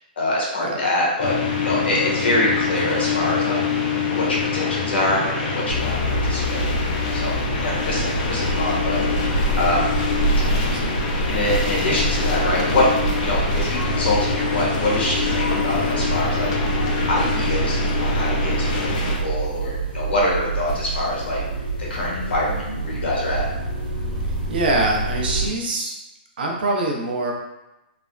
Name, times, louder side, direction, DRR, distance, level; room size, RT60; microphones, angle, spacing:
voice 1, 0.2-3.6 4.1-6.7 7.1-7.3 7.6-10.0 11.3-12.9 13.2-16.5 17.1-21.4 21.9-23.4, left 1 dB, 80° left, -4 dB, 1.1 m, -25 dB
sound 1, 1.2-19.2, left 5 dB, 35° left, 0.4 m, -25 dB
sound 2, 5.7-25.5, right 2 dB, 30° right, 1.1 m, -26 dB
voice 2, 10.4-10.9 24.2-25.9 26.4-27.3, right 2 dB, 65° right, -1 dB, 0.7 m, -24 dB
3.3 x 2.1 x 2.4 m, 0.97 s
hypercardioid pair, 165°, 6 cm